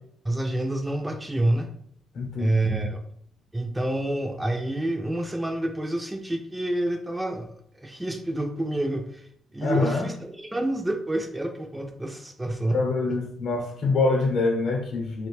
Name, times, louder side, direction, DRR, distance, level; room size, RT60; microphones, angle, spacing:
voice 1, 0.2-1.7 2.4-3.0 3.5-12.8, right 1 dB, 10° right, 5 dB, 0.3 m, -28 dB
voice 2, 2.1-2.9 9.6-10.1 12.7-15.3, left 3 dB, 70° left, 2 dB, 0.7 m, -25 dB
2.5 x 2.1 x 3.1 m, 0.66 s
cardioid pair, 90°, 0 cm